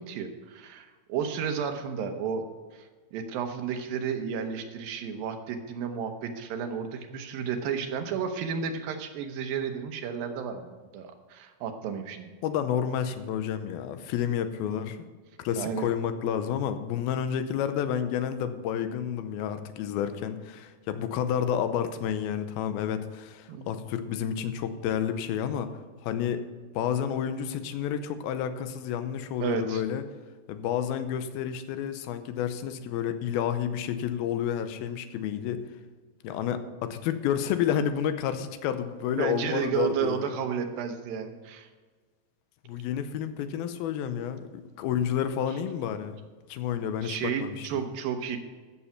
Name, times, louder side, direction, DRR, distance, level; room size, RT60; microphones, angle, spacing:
voice 1, 0.0-2.4 2.7-12.3 14.7-14.8 15.5-15.9 23.5-23.7 29.4-29.8 39.1-41.7 47.0-48.4, right 7 dB, 75° right, 6 dB, 2.6 m, -32 dB
voice 2, 12.4-15.1 15.4-25.7 26.0-26.4 26.7-30.0 30.5-35.6 36.2-40.2 42.7-44.5 44.8-46.2 46.5-47.7, left 9 dB, 85° left, 10 dB, 2.6 m, -30 dB
14.0 x 7.1 x 5.8 m, 1.4 s
omnidirectional pair, 4.3 m